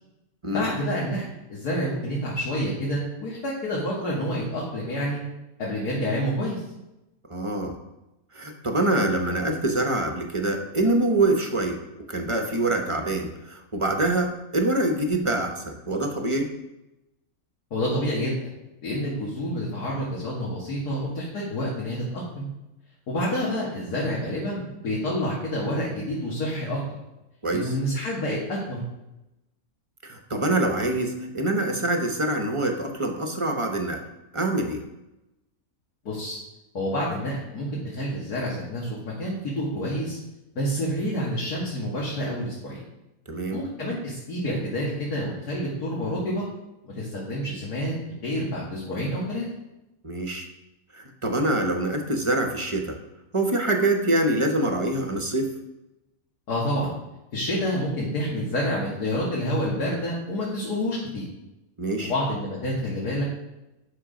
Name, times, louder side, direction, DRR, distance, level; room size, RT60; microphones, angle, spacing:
voice 1, 0.5-5.2 5.6-6.6 17.7-18.4 18.8-22.5 23.1-27.0 27.5-28.8 36.0-36.4 36.7-40.2 40.6-42.8 43.5-46.5 46.8-47.9 48.2-49.4 56.5-56.9 57.3-61.2 62.0-63.2, equal, 90° left, -6 dB, 2.3 m, -28 dB
voice 2, 7.3-7.8 8.3-11.8 12.1-16.5 27.4-27.7 30.0-34.0 34.3-34.8 43.3-43.6 50.0-50.5 50.9-53.0 53.3-55.5 61.8-62.1, right 2 dB, 25° right, 4 dB, 0.8 m, -25 dB
8.9 x 6.3 x 5.1 m, 0.96 s
omnidirectional pair, 1.6 m